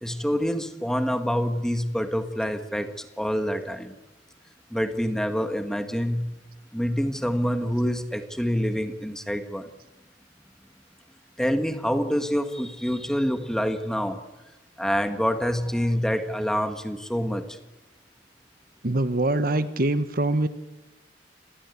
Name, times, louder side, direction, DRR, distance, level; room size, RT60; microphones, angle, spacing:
voice 1, 0.0-4.0 4.7-6.3 6.7-9.7 11.4-14.2 14.8-17.6, equal, 5° left, 8 dB, 1.7 m, -26 dB
voice 2, 18.8-20.5, right 2 dB, 50° right, 12 dB, 1.2 m, -24 dB
27.5 x 20.5 x 8.4 m, 1.1 s
head